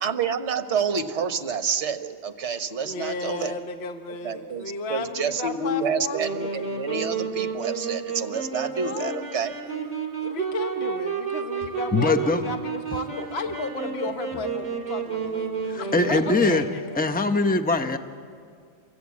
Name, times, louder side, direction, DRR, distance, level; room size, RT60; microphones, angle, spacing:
voice 1, 0.0-3.6 4.2-9.6, right 5 dB, 45° right, 9 dB, 1.3 m, -28 dB
voice 2, 2.8-6.5 8.8-9.2 10.2-16.8, left 3 dB, 45° left, 6 dB, 1.1 m, -34 dB
Wind instrument woodwind instrument, 6.1-17.0, right 5 dB, 25° right, 3.8 m, -31 dB
voice 3, 11.9-12.4 15.6-16.6 17.0-18.0, left 3 dB, 10° left, 8 dB, 0.5 m, -22 dB
28.5 x 24.0 x 8.4 m, 2.2 s
omnidirectional pair, 1.8 m